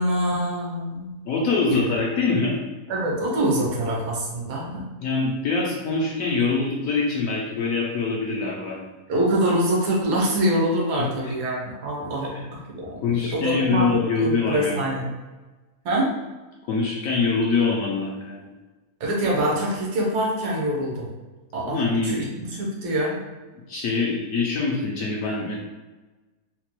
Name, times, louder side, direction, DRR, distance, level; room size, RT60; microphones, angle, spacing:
voice 1, 0.0-1.2 1.7-1.9 2.9-4.9 9.1-15.1 15.8-16.1 19.0-21.1 21.5-23.2, right 1 dB, 80° right, -3 dB, 1.4 m, -25 dB
voice 2, 1.3-2.6 5.0-8.9 11.0-11.4 12.3-12.4 13.0-14.9 16.7-18.5 21.6-22.2 23.7-25.6, left 4 dB, 70° left, -2 dB, 0.8 m, -24 dB
3.9 x 2.2 x 3.0 m, 1.2 s
omnidirectional pair, 1.7 m